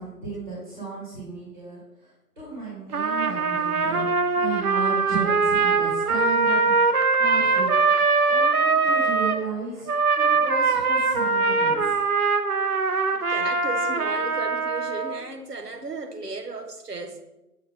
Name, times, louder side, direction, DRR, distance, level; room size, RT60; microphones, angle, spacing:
voice 1, 0.0-7.8 8.3-9.9 10.2-12.0, right 4 dB, 30° right, 1.8 m, -34 dB
Trumpet, 2.9-9.4 9.9-15.2, right 4 dB, 70° right, 0.6 m, -22 dB
voice 2, 13.1-17.2, right 3 dB, 85° right, 1.1 m, -35 dB
7.0 x 3.1 x 5.0 m
figure-of-eight pair, 165°, 46 cm